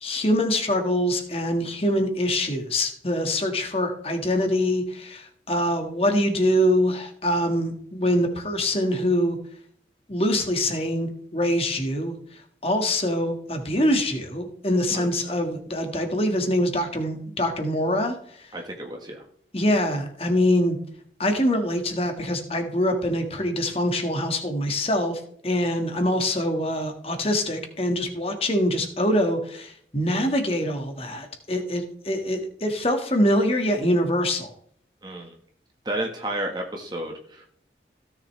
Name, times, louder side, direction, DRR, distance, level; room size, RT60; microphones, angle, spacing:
voice 1, 0.0-9.4 10.1-12.2 12.6-18.2 19.5-20.8 21.2-34.5, left 1 dB, 35° left, 5 dB, 1.7 m, -24 dB
voice 2, 14.9-15.3 18.5-19.2 35.0-35.4 35.8-37.5, right 1 dB, 25° right, 2 dB, 1.4 m, -32 dB
17.0 x 6.6 x 3.3 m, 0.62 s
head